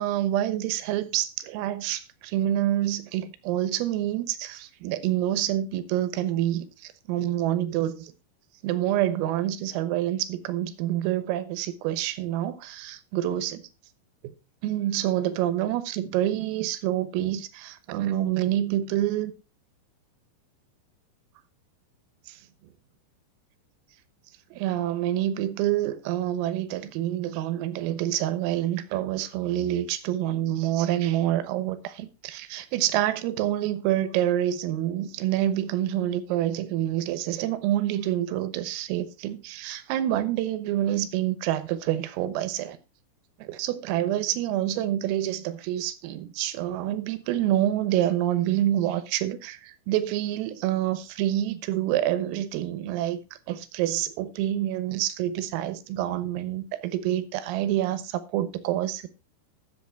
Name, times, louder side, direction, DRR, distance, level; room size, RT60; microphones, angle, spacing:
voice 1, 0.0-8.1 8.6-13.6 14.6-19.3 22.3-22.4 24.5-42.8 43.4-53.2 53.5-59.1, right 12 dB, 90° right, 3.8 m, -27 dB
13.0 x 8.1 x 4.4 m
omnidirectional pair, 5.8 m